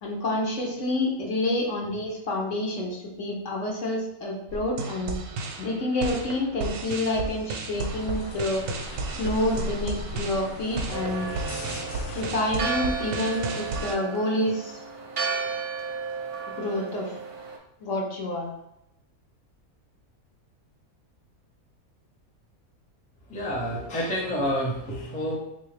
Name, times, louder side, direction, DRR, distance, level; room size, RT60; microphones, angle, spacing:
voice 1, 0.0-5.2 5.6-8.6 9.2-11.3 12.1-14.7 16.5-17.1 17.8-18.5, left 1 dB, 60° left, -1 dB, 1.0 m, -28 dB
sound 1, 4.5-14.0, right 3 dB, 90° right, 1.1 m, -34 dB
sound 2, 7.7-13.8, left 1 dB, 85° left, 1.2 m, -39 dB
Church bell, 10.9-17.6, right 5 dB, 60° right, 0.6 m, -33 dB
voice 2, 23.3-25.4, equal, 10° left, -4 dB, 0.4 m, -28 dB
3.7 x 2.7 x 3.2 m, 0.82 s
omnidirectional pair, 1.5 m